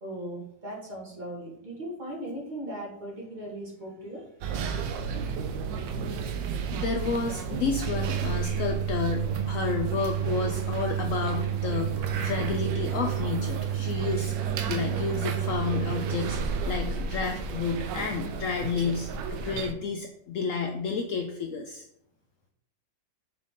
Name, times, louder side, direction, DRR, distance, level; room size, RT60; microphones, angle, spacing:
voice 1, 0.0-4.3, right 1 dB, 25° right, -4 dB, 1.8 m, -38 dB
sound 1, 4.4-19.7, right 7 dB, 80° right, 1.3 m, -30 dB
voice 2, 6.7-14.3 14.7-21.8, left 5 dB, 85° left, 4 dB, 0.7 m, -31 dB
7.3 x 3.8 x 3.7 m, 0.73 s
omnidirectional pair, 2.0 m